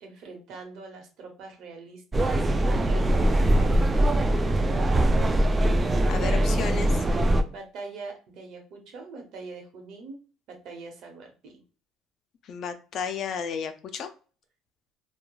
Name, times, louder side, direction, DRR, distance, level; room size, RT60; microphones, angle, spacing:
voice 1, 0.0-4.1 7.5-10.2 10.5-11.6, right 3 dB, 65° right, 2 dB, 1.0 m, -43 dB
sound 1, 2.1-7.4, right 1 dB, 25° right, 0.4 m, -22 dB
voice 2, 6.1-6.9 12.5-14.1, left 7 dB, 55° left, 8 dB, 0.4 m, -32 dB
3.0 x 2.3 x 2.3 m, 0.37 s
supercardioid pair, 85°, 0 cm